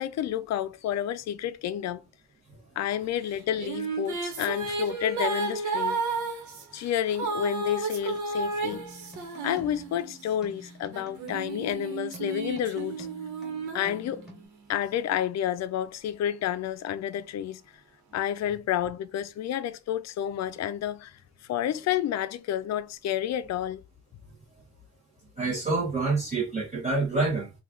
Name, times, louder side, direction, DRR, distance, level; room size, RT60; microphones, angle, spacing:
voice 1, 0.0-2.0 2.8-6.0 6.7-8.8 9.4-13.1 13.7-14.3 14.7-17.6 18.1-21.2 21.5-23.8, left 10 dB, 60° left, 0.5 m, -30 dB
sound 1, 3.3-10.3 10.9-14.6, right 3 dB, 75° right, 1.2 m, -33 dB
sound 2, 8.7-14.4, right 1 dB, ahead, 1.4 m, -48 dB
voice 2, 25.4-27.5, right 3 dB, 25° right, 1.1 m, -27 dB
3.1 x 2.4 x 3.6 m
cardioid pair, 90°, 30 cm